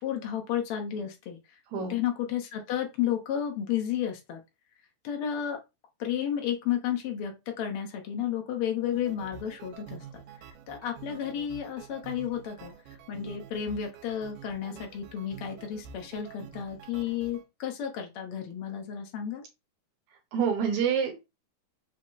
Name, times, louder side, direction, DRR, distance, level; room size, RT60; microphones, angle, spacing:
voice 1, 0.0-1.4 1.9-4.4 5.0-5.6 6.0-10.2 10.7-12.7 13.1-19.4, left 9 dB, 75° left, 2 dB, 1.2 m, -32 dB
sound 1, 8.8-17.4, right 8 dB, 85° right, 2.4 m, -48 dB
voice 2, 20.3-21.3, right 7 dB, 65° right, 3 dB, 2.0 m, -27 dB
5.8 x 2.1 x 3.8 m, 0.24 s
omnidirectional pair, 3.9 m